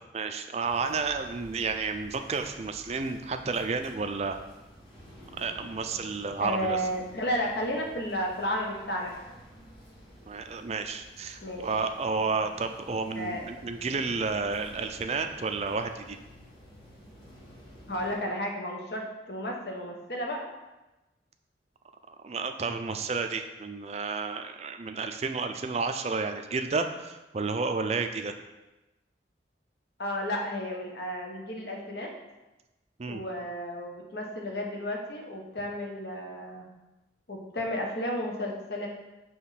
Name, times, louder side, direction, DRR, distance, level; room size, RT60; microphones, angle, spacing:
voice 1, 0.1-4.4 5.4-6.8 10.3-16.2 22.1-28.3 33.0-33.2, right 4 dB, 35° right, 7 dB, 0.4 m, -31 dB
sound 1, 0.6-18.2, equal, 25° left, 2.2 m, -51 dB
voice 2, 6.4-9.2 11.4-11.6 13.2-13.5 17.9-20.5 30.0-32.1 33.1-36.7 37.3-38.9, equal, 60° left, 1 dB, 1.0 m, -33 dB
6.1 x 3.1 x 5.6 m, 1.0 s
head